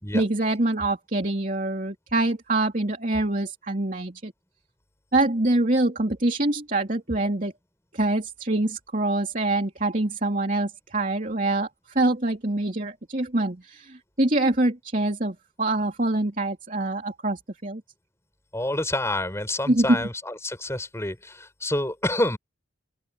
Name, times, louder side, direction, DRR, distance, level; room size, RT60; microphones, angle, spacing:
voice 1, 0.1-4.3 5.1-7.5 7.9-11.7 11.9-17.8 19.7-20.0, right 2 dB, 40° right, 3.1 m, -25 dB
voice 2, 18.5-22.4, left 1 dB, 15° left, 5.9 m, -28 dB
open air
head